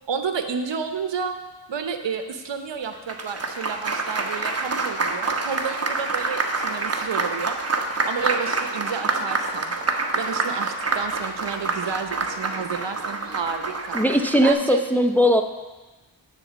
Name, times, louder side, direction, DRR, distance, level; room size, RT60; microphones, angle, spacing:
voice 1, 0.1-1.4 1.7-7.6 8.1-9.8 10.1-14.8, right 6 dB, 65° right, 7 dB, 0.9 m, -31 dB
Applause, 2.8-14.5, right 3 dB, 30° right, 1.0 m, -27 dB
voice 2, 13.9-15.4, equal, 5° left, 6 dB, 0.6 m, -19 dB
9.9 x 4.0 x 6.9 m, 1.2 s
cardioid pair, 45°, 46 cm